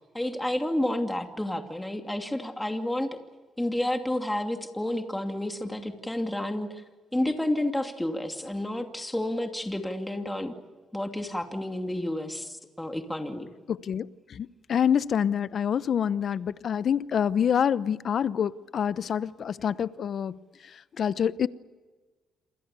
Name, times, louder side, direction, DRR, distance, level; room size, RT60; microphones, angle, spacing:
voice 1, 0.1-3.2 3.6-6.8 7.1-10.5 10.9-13.5, left 1 dB, 10° left, 5 dB, 2.6 m, -30 dB
voice 2, 13.7-20.4 21.0-21.5, left 8 dB, 55° left, 16 dB, 0.9 m, -26 dB
28.5 x 24.0 x 6.9 m, 1.3 s
cardioid pair, 90°, 0 cm